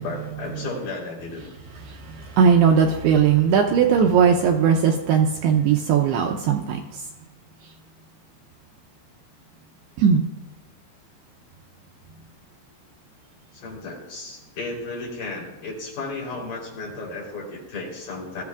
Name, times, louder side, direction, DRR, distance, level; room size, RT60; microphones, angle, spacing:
voice 1, 0.0-1.5 13.5-18.4, left 3 dB, 50° left, -3 dB, 5.0 m, -34 dB
voice 2, 1.9-7.0 10.0-10.2, right 7 dB, 80° right, 3 dB, 2.4 m, -19 dB
21.0 x 14.0 x 2.4 m, 1.0 s
omnidirectional pair, 5.3 m